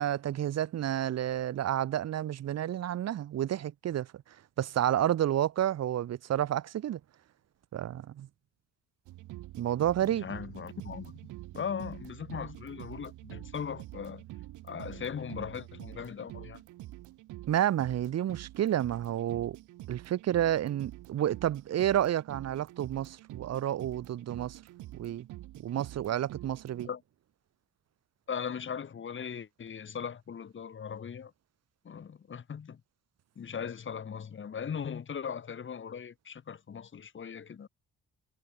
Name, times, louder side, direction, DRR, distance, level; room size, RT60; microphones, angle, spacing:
voice 1, 0.0-4.1 4.6-7.0 7.7-8.3 9.6-10.3 17.5-19.6 19.9-24.6 25.0-25.3 25.6-26.9, right 11 dB, 55° right, 1.0 m, -30 dB
sound 1, 9.1-26.9, right 16 dB, 90° right, 1.7 m, -47 dB
voice 2, 10.0-14.2 14.6-16.6 26.8-27.0 28.3-31.3 31.9-32.8 33.4-37.7, left 7 dB, 40° left, 1.7 m, -39 dB
cardioid pair, 90°, 30 cm